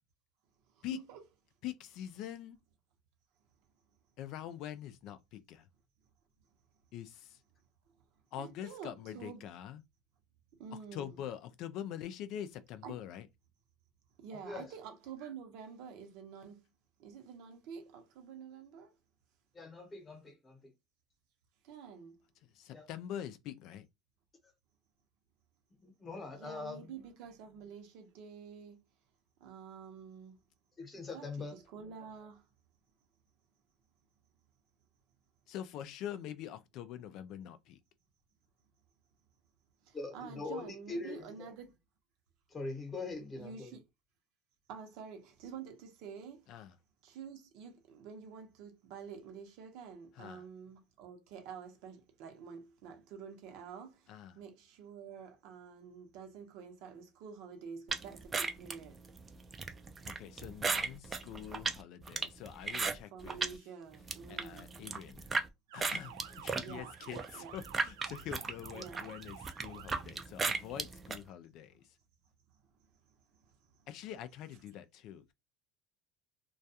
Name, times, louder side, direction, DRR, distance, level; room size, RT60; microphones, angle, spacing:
voice 1, 0.7-1.2 8.4-9.5 10.5-11.2 12.8-13.0 14.2-16.7 17.0-19.0 21.6-22.2 26.3-28.8 29.4-30.4 31.1-32.5 39.8-41.8 43.3-43.8 44.7-46.5 47.0-59.0 63.1-64.8 66.5-67.5 68.7-69.0 73.3-73.5, right 6 dB, 65° right, 0.7 m, -49 dB
voice 2, 1.6-2.6 4.2-5.7 6.9-7.4 8.3-9.8 10.9-13.3 22.5-23.9 35.5-37.8 46.5-46.7 50.2-50.4 54.1-54.4 60.0-63.4 64.3-65.3 65.7-71.8 73.9-75.3, left 10 dB, 60° left, 0.3 m, -44 dB
voice 3, 14.3-14.7 19.5-20.7 22.7-22.9 25.8-26.9 30.8-31.6 39.9-41.5 42.5-43.8, left 3 dB, 20° left, 0.9 m, -42 dB
sound 1, 57.9-63.6 63.9-65.5 65.8-71.2, right 4 dB, 20° right, 0.4 m, -36 dB
Motor vehicle (road) / Siren, 65.7-70.0, right 9 dB, 90° right, 0.4 m, -51 dB
2.3 x 2.2 x 2.7 m
supercardioid pair, 120°, 0 cm